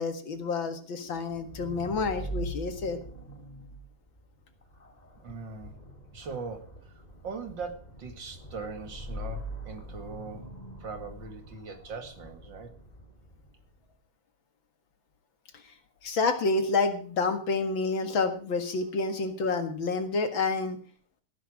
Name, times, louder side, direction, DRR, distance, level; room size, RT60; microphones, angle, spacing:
voice 1, 0.0-3.0 16.0-20.8, left 3 dB, 60° left, 8 dB, 2.5 m, -29 dB
sound 1, 1.2-13.7, equal, 15° left, 2.6 m, -43 dB
voice 2, 5.2-5.8 6.1-10.5 10.8-12.7, right 4 dB, 55° right, 7 dB, 2.7 m, -40 dB
17.5 x 10.5 x 4.9 m, 0.40 s
omnidirectional pair, 2.4 m